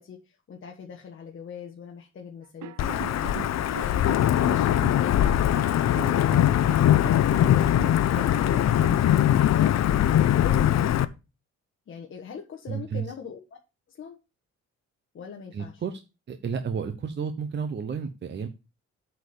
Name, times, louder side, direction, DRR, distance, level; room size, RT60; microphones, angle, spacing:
voice 1, 0.0-10.9 11.9-13.6 13.9-14.2 15.1-15.8, left 7 dB, 45° left, 1.3 m, -42 dB
sound 1, 2.6-9.2, right 14 dB, 80° right, 0.7 m, -40 dB
Wind / Thunder / Rain, 2.8-11.0, left 11 dB, 65° left, 0.7 m, -21 dB
voice 2, 12.7-13.0 15.5-16.0 16.3-18.5, right 6 dB, 40° right, 0.9 m, -31 dB
8.4 x 4.5 x 6.9 m
cardioid pair, 155°, 29 cm